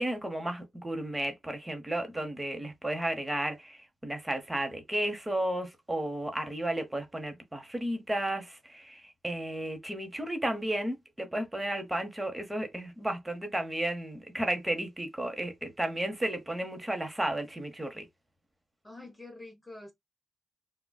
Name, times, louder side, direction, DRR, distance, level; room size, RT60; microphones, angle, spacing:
voice 1, 0.0-18.1, right 1 dB, 15° right, 1.0 m, -33 dB
voice 2, 18.8-19.9, left 2 dB, 15° left, 0.8 m, -46 dB
3.8 x 2.3 x 2.3 m
cardioid pair, 80°, 0 cm